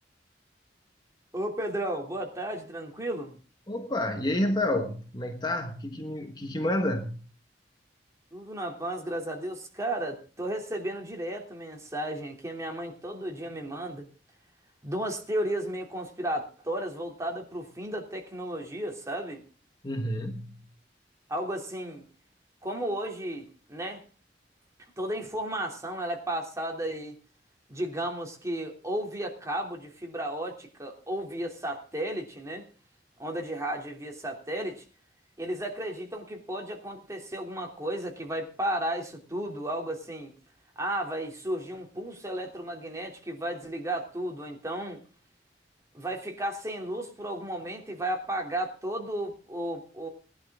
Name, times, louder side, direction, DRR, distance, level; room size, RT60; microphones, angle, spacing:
voice 1, 1.3-3.4 8.3-14.0 14.8-19.4 21.3-22.0 22.6-24.0 25.0-27.1 27.7-32.7 33.2-34.8 35.4-40.3 40.8-45.0 45.9-50.1, right 1 dB, 20° right, 3.1 m, -34 dB
voice 2, 3.7-7.2 19.8-20.6, left 1 dB, 25° left, 1.3 m, -29 dB
19.5 x 11.5 x 3.7 m
head